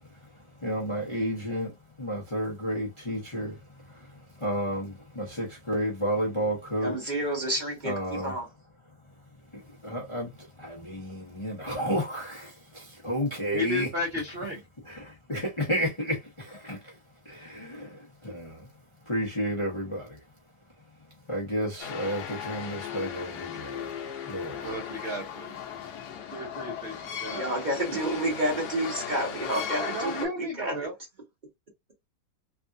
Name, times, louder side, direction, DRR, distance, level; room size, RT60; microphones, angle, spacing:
voice 1, 0.6-1.7 2.0-3.5 4.4-7.0 7.9-8.3 9.5-10.3 10.6-13.9 14.9-16.9 17.3-18.6 19.1-20.1 21.3-23.9 24.3-24.8, equal, 35° left, 0.5 m, -31 dB
voice 2, 6.8-8.5 27.3-30.9, right 1 dB, 30° right, 1.0 m, -30 dB
voice 3, 13.5-14.6 24.6-25.5 26.3-27.0 27.2-27.5 29.8-30.9, left 1 dB, 55° right, 0.6 m, -33 dB
sound 1, 21.8-30.3, left 8 dB, 65° left, 1.2 m, -37 dB
3.4 x 2.4 x 2.6 m
omnidirectional pair, 2.1 m